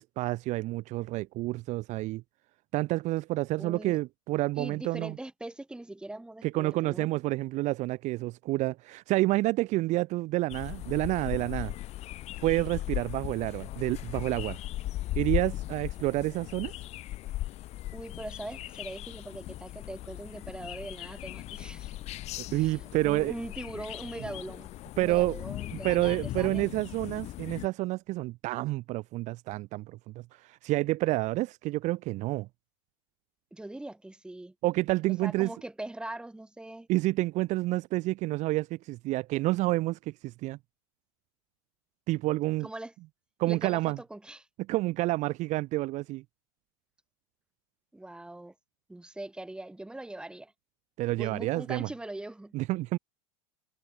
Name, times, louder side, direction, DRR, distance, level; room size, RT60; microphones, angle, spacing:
voice 1, 0.0-2.2 2.7-5.2 6.4-11.7 12.4-14.6 15.2-16.7 22.5-23.3 25.0-25.3 25.8-32.5 34.6-35.5 36.9-40.6 42.1-42.7 43.4-44.0 44.7-46.2 51.0-51.9 52.5-53.0, right 19 dB, 45° right, 1.1 m, -29 dB
voice 2, 3.6-4.0 4.6-7.1 17.9-22.0 22.5-24.7 24.9-26.7 33.5-34.5 35.2-36.9 42.6-42.9 43.5-44.5 47.9-48.5 48.9-50.5 51.1-52.5, right 1 dB, 5° right, 3.8 m, -41 dB
sound 1, 10.5-27.7, left 15 dB, 40° left, 1.2 m, -38 dB
supercardioid pair, 125°, 17 cm